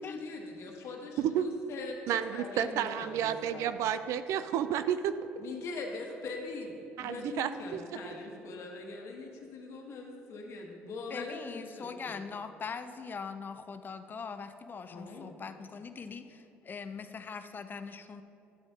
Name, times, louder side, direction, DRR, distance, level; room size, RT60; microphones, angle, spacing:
voice 1, 0.0-3.7 5.4-12.2 14.9-15.4, left 3 dB, 65° left, 1 dB, 1.2 m, -42 dB
voice 2, 2.1-5.1 7.0-7.8, right 10 dB, 70° right, 11 dB, 0.3 m, -31 dB
voice 3, 11.1-18.2, left 5 dB, 40° left, 10 dB, 0.5 m, -41 dB
10.5 x 7.8 x 2.8 m, 2.9 s
supercardioid pair, 65°, 5 cm